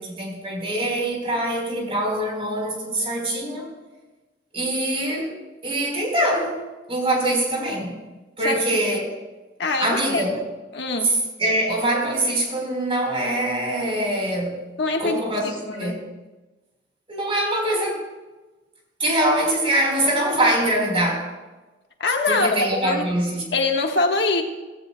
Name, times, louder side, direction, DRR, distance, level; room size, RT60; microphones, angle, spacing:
voice 1, 0.0-3.7 4.5-5.3 5.6-6.6 6.9-8.0 8.4-9.1 9.8-10.4 11.0-14.6 15.0-16.0 17.1-18.1 19.0-21.3 22.3-23.5, right 1 dB, 35° right, 0 dB, 3.9 m, -23 dB
voice 2, 9.6-10.4 10.7-11.2 14.8-16.0 22.0-23.0 23.5-24.4, left 3 dB, 70° left, 3 dB, 1.3 m, -24 dB
16.5 x 16.0 x 2.2 m, 1.2 s
head